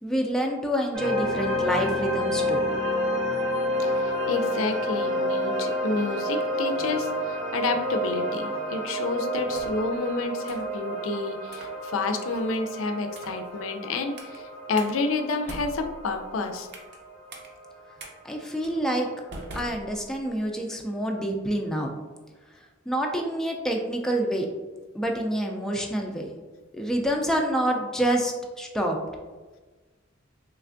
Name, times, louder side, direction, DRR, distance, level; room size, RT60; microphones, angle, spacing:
voice 1, 0.0-2.6 18.2-19.1 19.5-21.9 22.9-24.5 24.9-26.3 26.7-29.0, right 1 dB, 5° left, 1 dB, 0.3 m, -27 dB
sound 1, 0.9-17.9, equal, 90° right, 1.4 m, -29 dB
voice 2, 3.8-16.7, left 3 dB, 85° left, 6 dB, 0.4 m, -29 dB
sound 2, 9.3-9.9 10.5-10.7 11.5-11.8 12.3-12.6 13.1-13.5 14.2-14.4 14.8-14.9 15.3-17.0 17.3-17.5 18.0-18.1 18.6-18.8 19.3-20.4, right 1 dB, 55° right, 0.6 m, -42 dB
3.3 x 3.2 x 2.5 m, 1.3 s
head